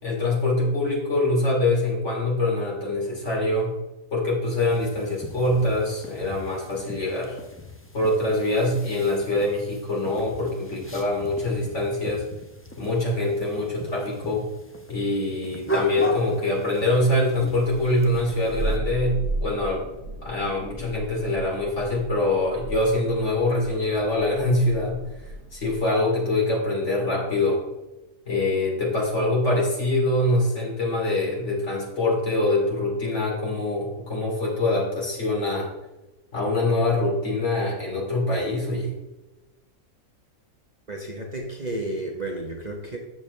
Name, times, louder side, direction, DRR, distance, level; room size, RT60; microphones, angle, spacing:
voice 1, 0.0-3.7 4.1-7.4 7.9-12.2 12.8-14.4 14.9-19.8 20.2-25.0 25.5-27.6 28.3-35.7 36.3-38.9, left 2 dB, 50° left, -3 dB, 3.4 m, -24 dB
sound 1, 4.6-18.8, left 1 dB, 10° left, 0.8 m, -37 dB
Thunder, 17.5-26.0, right 2 dB, 35° left, 2.9 m, -35 dB
voice 2, 40.9-43.0, right 1 dB, 30° right, 0 dB, 1.0 m, -32 dB
12.5 x 7.0 x 3.3 m, 1.0 s
omnidirectional pair, 1.6 m